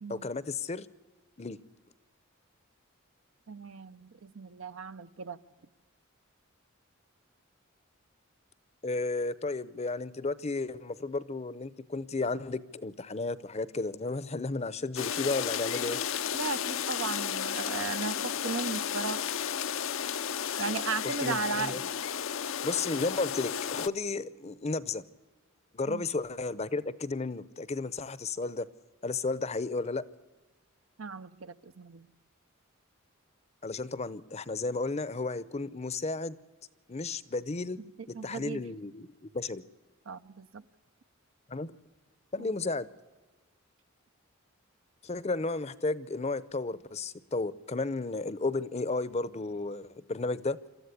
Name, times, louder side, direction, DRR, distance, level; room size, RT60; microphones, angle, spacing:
voice 1, 0.1-0.9 1.4-1.6 8.8-16.0 21.0-21.8 22.6-25.0 25.7-28.7 29.0-30.0 33.6-36.4 36.9-37.8 38.1-39.1 39.3-39.6 41.5-41.7 42.3-42.9 45.0-50.6, left 3 dB, 30° left, 0.7 m, -33 dB
voice 2, 3.5-5.4 16.3-19.2 20.6-21.9 25.9-26.1 31.0-32.1 38.1-38.6 40.1-40.6 42.4-42.6, right 5 dB, 65° right, 0.7 m, -36 dB
sound 1, 15.0-23.9, left 8 dB, 70° left, 0.7 m, -33 dB
27.0 x 13.5 x 8.3 m
head